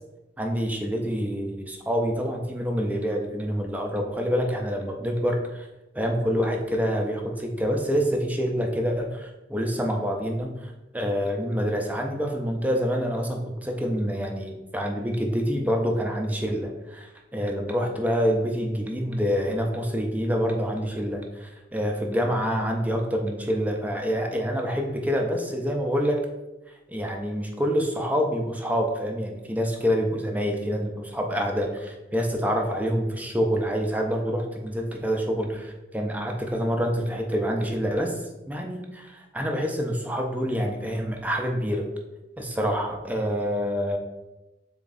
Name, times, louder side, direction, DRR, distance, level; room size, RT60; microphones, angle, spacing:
voice 1, 0.4-5.7 5.9-26.2 26.9-38.1 38.5-41.9 42.4-44.0, equal, 10° right, 2 dB, 0.4 m, -27 dB
3.5 x 3.4 x 3.9 m, 1.0 s
head